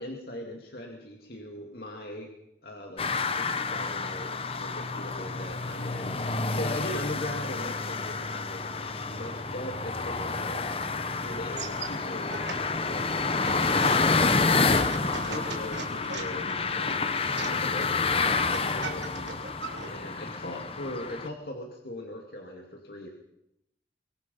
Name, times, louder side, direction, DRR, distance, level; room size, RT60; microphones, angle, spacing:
voice 1, 0.0-2.3 2.6-10.7 11.2-12.5 12.9-14.2 14.7-16.9 17.2-19.4 19.8-23.1, left 1 dB, 55° left, 1 dB, 2.4 m, -40 dB
sound 1, 3.0-21.3, left 4 dB, 30° left, 1.0 m, -29 dB
sound 2, 11.6-19.9, right 4 dB, 85° right, 3.3 m, -41 dB
24.5 x 23.0 x 5.5 m, 0.82 s
head